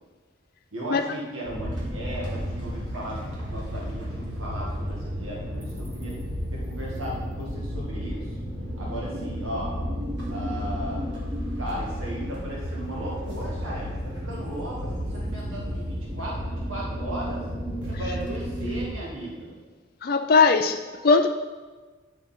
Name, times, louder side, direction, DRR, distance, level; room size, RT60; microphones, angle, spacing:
voice 1, 0.7-6.2 6.5-8.3 8.8-9.8 10.3-11.0 11.6-17.4 17.9-19.6, equal, 90° right, -4 dB, 1.9 m, -36 dB
sound 1, 1.4-18.9, equal, 65° right, 2.8 m, -32 dB
voice 2, 20.0-21.3, left 4 dB, 50° left, 4 dB, 0.4 m, -19 dB
10.0 x 6.2 x 4.4 m, 1.4 s
head